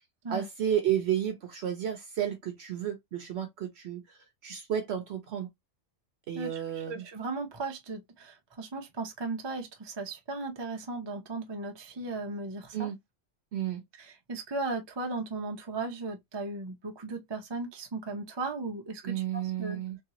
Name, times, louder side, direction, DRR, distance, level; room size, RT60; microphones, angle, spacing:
voice 1, 0.3-5.5 6.3-7.0 12.7-13.0 13.5-13.8 19.0-20.0, right 10 dB, 65° right, 0.8 m, -32 dB
voice 2, 6.3-12.9 14.0-19.8, right 3 dB, 30° right, 0.5 m, -36 dB
3.1 x 2.9 x 2.8 m
omnidirectional pair, 1.3 m